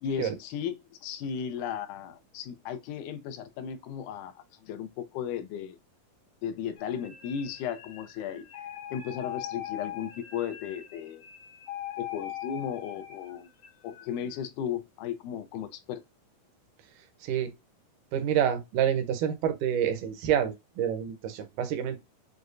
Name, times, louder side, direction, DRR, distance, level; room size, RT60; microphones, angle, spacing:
voice 1, 0.0-5.8 6.4-8.5 8.9-11.3 12.0-13.5 13.8-16.0, left 8 dB, 80° left, 2.1 m, -35 dB
sound 1, 6.8-14.0, left 11 dB, 65° left, 1.7 m, -41 dB
voice 2, 18.1-22.0, right 9 dB, 80° right, 2.3 m, -28 dB
6.4 x 2.4 x 2.4 m
omnidirectional pair, 3.7 m